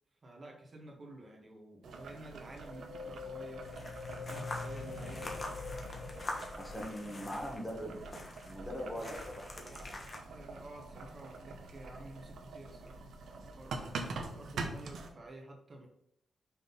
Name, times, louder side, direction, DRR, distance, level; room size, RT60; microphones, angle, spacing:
voice 1, 0.2-3.6 4.3-5.3 10.3-15.9, right 2 dB, 40° right, 1 dB, 1.5 m, -51 dB
Boiling, 1.8-15.1, right 3 dB, 85° right, 0.9 m, -45 dB
sound 1, 2.7-7.3, left 4 dB, 70° left, 1.2 m, -44 dB
sound 2, 3.6-10.2, left 2 dB, 35° left, 1.3 m, -45 dB
voice 2, 6.6-8.0 8.4-9.9, equal, 10° left, 0 dB, 1.6 m, -41 dB
5.9 x 3.8 x 5.5 m, 0.75 s
cardioid pair, 95°, 0 cm